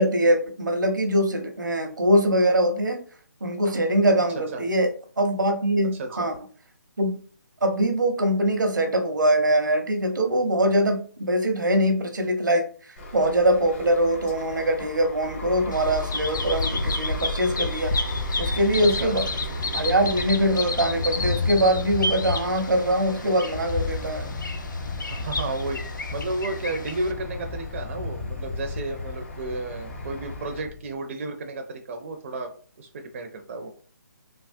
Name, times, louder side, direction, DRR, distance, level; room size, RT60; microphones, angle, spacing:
voice 1, 0.0-3.0 3.4-6.4 7.0-7.2 7.6-17.9 18.4-19.3 19.7-24.3, right 1 dB, 85° right, 5 dB, 0.8 m, -23 dB
sound 1, 13.0-30.6, equal, 40° left, 1.1 m, -38 dB
Bird vocalization bird call bird song, 15.7-27.1, left 2 dB, 85° left, 0.5 m, -31 dB
Thunder, 18.4-30.9, left 4 dB, 25° left, 0.3 m, -34 dB
voice 2, 25.1-25.8 26.1-32.5 32.8-33.7, right 2 dB, 40° right, 4 dB, 0.5 m, -32 dB
3.4 x 2.0 x 2.5 m, 0.42 s
figure-of-eight pair, 150°, 10 cm